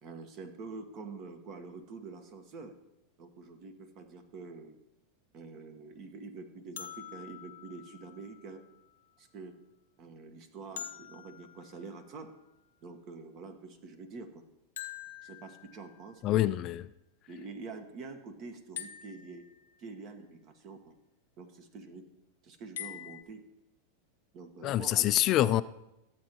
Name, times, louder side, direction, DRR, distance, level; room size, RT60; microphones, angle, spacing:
voice 1, 0.0-2.7 3.2-4.8 5.3-8.6 9.2-9.6 10.0-12.3 12.8-14.4 15.2-16.5 17.3-19.4 19.8-20.9 21.4-22.0 22.4-23.4 24.3-25.1, right 4 dB, 45° right, 1.2 m, -46 dB
sound 1, 6.8-8.7 10.8-12.6 14.8-16.2 18.8-20.1 22.8-23.2, left 11 dB, 85° left, 0.7 m, -46 dB
voice 2, 16.2-16.8 24.6-25.6, left 14 dB, 45° left, 0.3 m, -26 dB
12.5 x 8.0 x 3.0 m
hypercardioid pair, 110°, 0 cm